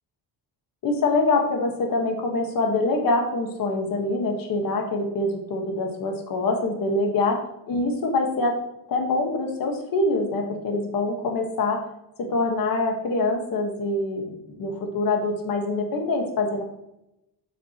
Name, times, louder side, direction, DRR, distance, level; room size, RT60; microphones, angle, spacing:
voice 1, 0.8-7.4 7.7-8.5 8.9-11.8 12.2-16.6, left 2 dB, 50° left, 2 dB, 1.5 m, -25 dB
7.8 x 6.5 x 3.0 m, 0.88 s
cardioid pair, 170°, 45 cm